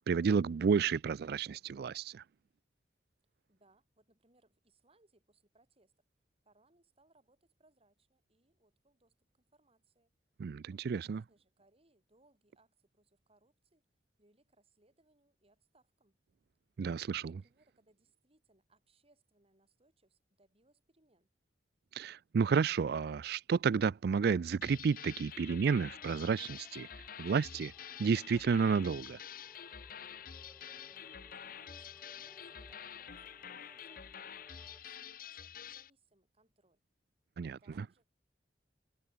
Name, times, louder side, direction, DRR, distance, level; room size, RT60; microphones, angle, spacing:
voice 1, 0.1-2.2 10.4-11.2 16.8-17.3 21.9-26.9 27.2-27.7 28.0-29.2 37.4-37.8, right 5 dB, 60° right, 0.4 m, -31 dB
voice 2, 3.5-5.9 6.4-10.1 10.9-13.8 14.2-16.2 17.2-21.3 30.9-36.8 37.6-38.1, right 2 dB, 35° right, 6.7 m, -71 dB
sound 1, 24.6-35.9, left 8 dB, 55° left, 0.9 m, -48 dB
sound 2, 26.0-34.8, equal, 5° left, 1.4 m, -63 dB
head